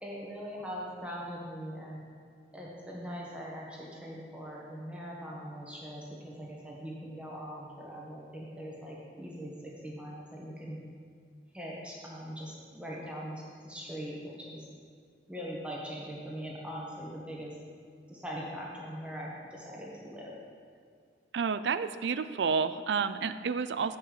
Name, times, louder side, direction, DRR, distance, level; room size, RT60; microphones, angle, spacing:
voice 1, 0.0-2.1 2.5-10.8 11.5-14.7 15.3-17.6 18.1-20.3, equal, 5° right, -4 dB, 1.4 m, -41 dB
voice 2, 21.3-24.0, right 5 dB, 80° right, 13 dB, 0.4 m, -30 dB
7.7 x 5.5 x 6.7 m, 2.1 s
head